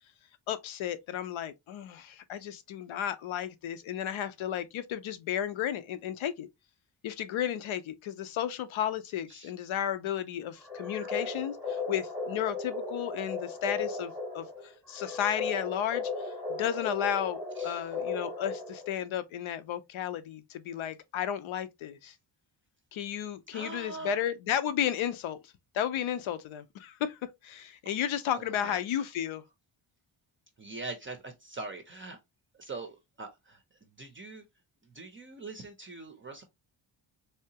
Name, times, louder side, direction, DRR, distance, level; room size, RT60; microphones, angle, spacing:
voice 1, 0.5-6.5 7.0-22.1 22.9-25.4 25.7-29.4, left 10 dB, 75° left, 0.7 m, -33 dB
sound 1, 10.6-19.0, left 4 dB, 5° right, 0.9 m, -36 dB
voice 2, 17.6-17.9 23.5-24.2 28.6-29.1 30.6-32.2 32.6-33.6 34.0-34.4 34.9-36.4, right 3 dB, 25° right, 0.5 m, -43 dB
3.4 x 2.8 x 2.7 m
cardioid pair, 125°, 47 cm